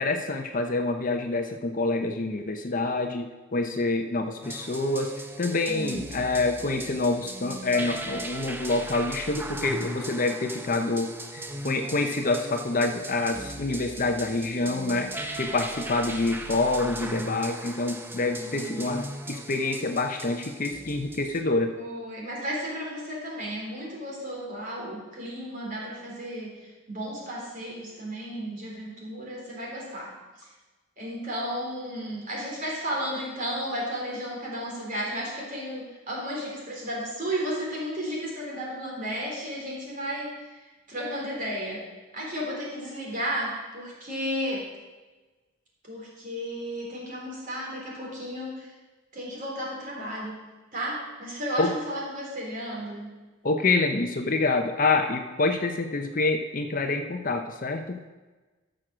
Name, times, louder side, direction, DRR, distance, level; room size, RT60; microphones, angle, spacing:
voice 1, 0.0-15.1 15.4-21.7 51.6-51.7 53.4-58.1, left 3 dB, 40° left, 5 dB, 0.7 m, -27 dB
sound 1, 4.4-21.4, right 1 dB, 10° right, 0.7 m, -38 dB
voice 2, 5.7-6.0 18.4-18.9 21.8-30.5 31.0-40.4 40.9-41.8 42.1-44.6 45.9-48.7 49.1-50.4 50.7-53.1, equal, 40° right, -3 dB, 3.6 m, -33 dB
13.5 x 6.5 x 6.2 m, 1.2 s
head